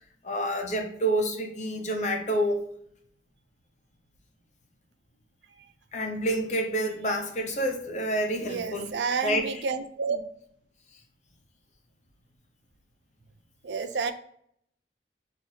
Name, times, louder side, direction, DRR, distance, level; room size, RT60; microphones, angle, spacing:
voice 1, 0.2-2.6 5.9-8.9 9.2-9.6, right 1 dB, 40° left, 3 dB, 0.8 m, -28 dB
voice 2, 8.4-10.2 13.6-14.1, right 5 dB, 80° right, 10 dB, 0.4 m, -30 dB
6.3 x 2.7 x 2.8 m, 0.69 s
head